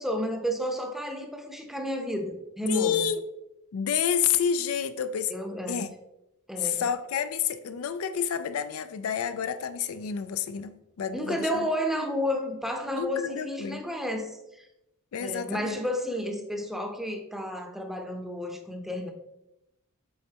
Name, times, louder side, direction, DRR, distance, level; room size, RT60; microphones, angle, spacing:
voice 1, 0.0-3.1 5.3-5.9 6.5-6.9 11.1-14.7 15.2-19.1, equal, ahead, 3 dB, 0.7 m, -31 dB
voice 2, 2.7-3.2 3.7-5.3 5.7-5.9 6.6-11.7 13.0-13.8 15.1-15.8, left 8 dB, 80° left, 11 dB, 0.4 m, -29 dB
7.8 x 4.2 x 2.9 m, 0.90 s
head